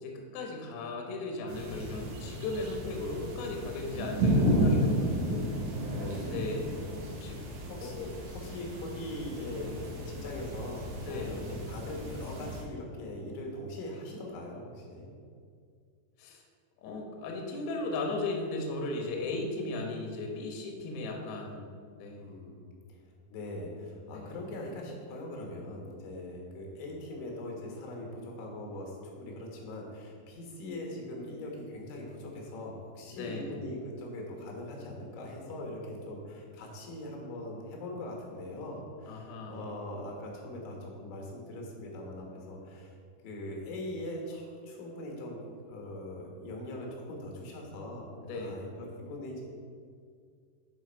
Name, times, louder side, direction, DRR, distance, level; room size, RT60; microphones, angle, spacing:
voice 1, 0.0-5.6 6.3-6.8 7.2-7.4 8.0-8.1 11.0-11.5 16.2-16.4 16.8-21.7 22.0-22.3 24.1-24.4 33.1-33.5 39.1-39.7 48.2-48.7, left 2 dB, 70° left, 1 dB, 2.5 m, -36 dB
sound 1, 1.5-12.6, equal, 65° right, 2.1 m, -33 dB
voice 2, 4.8-5.3 5.9-6.5 7.7-7.9 8.3-9.8 10.1-15.1 22.2-23.0 23.3-43.0 43.2-45.4 45.7-48.1 48.3-49.4, left 1 dB, 90° left, 0 dB, 3.7 m, -41 dB
10.0 x 4.4 x 4.4 m, 2.2 s
omnidirectional pair, 5.3 m